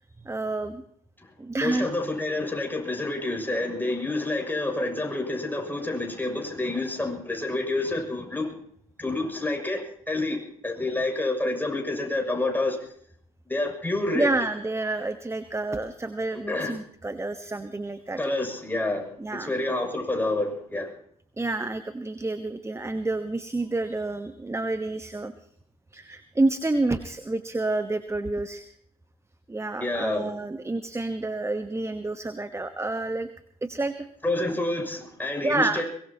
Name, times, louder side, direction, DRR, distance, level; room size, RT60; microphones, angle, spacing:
voice 1, 0.2-0.8 1.4-1.9 14.1-18.2 19.2-19.5 21.4-25.3 25.9-28.7 29.5-33.3 33.6-34.1 35.4-35.8, right 2 dB, 15° right, 11 dB, 1.2 m, -29 dB
voice 2, 1.6-8.5 9.0-10.4 10.6-12.8 13.5-14.3 16.5-16.7 18.2-19.1 19.4-20.9 29.8-30.3 34.2-35.8, left 2 dB, 10° left, 1 dB, 6.7 m, -28 dB
23.0 x 20.0 x 2.9 m, 0.64 s
hypercardioid pair, 55°, 19 cm